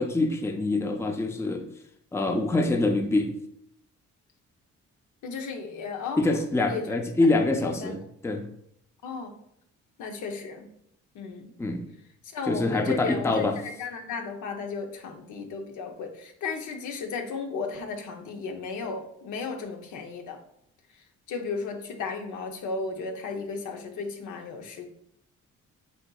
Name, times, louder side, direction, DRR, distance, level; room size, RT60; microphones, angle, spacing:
voice 1, 0.0-1.6 2.1-3.3 6.2-8.4 11.6-11.9 12.5-13.6, left 2 dB, 10° left, 5 dB, 0.5 m, -25 dB
voice 2, 5.2-6.4 6.7-7.0 7.6-7.9 9.0-9.4 10.0-10.7 11.1-11.5 12.2-20.4 21.3-24.9, left 4 dB, 75° left, 5 dB, 0.8 m, -35 dB
8.0 x 2.7 x 2.3 m, 0.74 s
cardioid pair, 90°, 30 cm